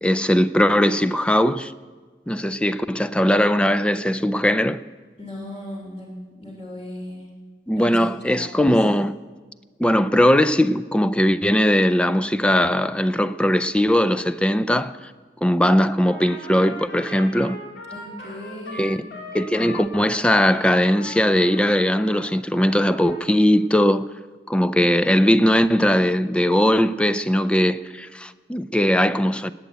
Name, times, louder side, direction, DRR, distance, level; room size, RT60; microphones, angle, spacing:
voice 1, 0.0-1.7 2.3-4.8 7.7-9.1 9.8-14.9 15.4-17.6 18.7-19.0 19.3-24.1 24.5-29.5, equal, 5° left, 0.4 m, -19 dB
voice 2, 5.2-7.3 7.7-8.0 8.3-8.7 17.9-19.0, left 1 dB, 35° left, 3.1 m, -37 dB
Trumpet, 16.0-22.2 22.5-23.3, left 1 dB, 65° left, 3.8 m, -39 dB
19.0 x 9.1 x 8.2 m
head